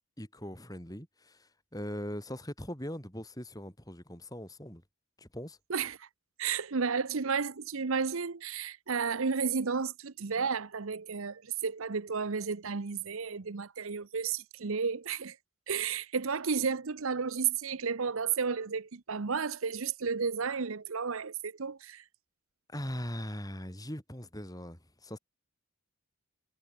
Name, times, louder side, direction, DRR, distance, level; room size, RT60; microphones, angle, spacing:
voice 1, 0.2-4.8 5.2-5.6 22.7-25.2, equal, 15° left, 7.5 m, -40 dB
voice 2, 5.7-6.1 6.4-15.4 15.7-22.0, right 5 dB, 70° right, 0.8 m, -32 dB
head